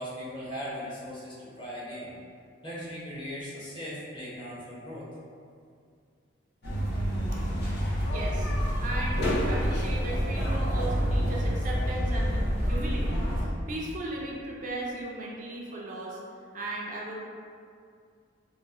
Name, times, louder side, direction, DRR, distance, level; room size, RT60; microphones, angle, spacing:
voice 1, 0.0-2.1 2.6-5.1, equal, 25° left, -8 dB, 0.8 m, -38 dB
sound 1, 6.6-13.4, equal, 60° left, 0.7 m, -27 dB
voice 2, 8.1-8.5 8.8-16.2 16.5-17.2, right 1 dB, 45° right, -3 dB, 0.4 m, -37 dB
2.9 x 2.0 x 3.5 m, 2.3 s
head